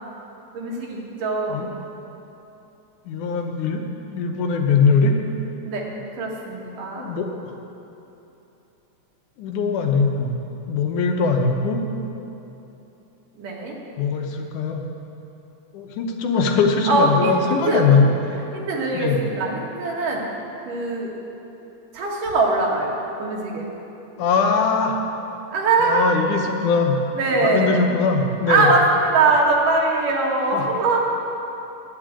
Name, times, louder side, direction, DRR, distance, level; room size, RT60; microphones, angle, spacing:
voice 1, 0.5-1.7 5.6-5.8 6.2-7.1 13.4-13.8 16.9-17.9 18.5-20.2 20.7-21.1 21.9-23.7 25.5-26.0 27.1-27.9 28.5-31.0, right 3 dB, 80° right, -2 dB, 3.3 m, -22 dB
voice 2, 3.1-3.8 4.1-5.2 7.0-7.5 9.4-10.3 10.7-11.8 14.0-14.8 15.7-18.1 18.9-19.2 24.2-25.0 25.8-27.0 27.4-28.7 30.5-30.6, left 4 dB, 75° left, 3 dB, 2.4 m, -21 dB
9.7 x 8.8 x 8.8 m, 2.9 s
omnidirectional pair, 3.7 m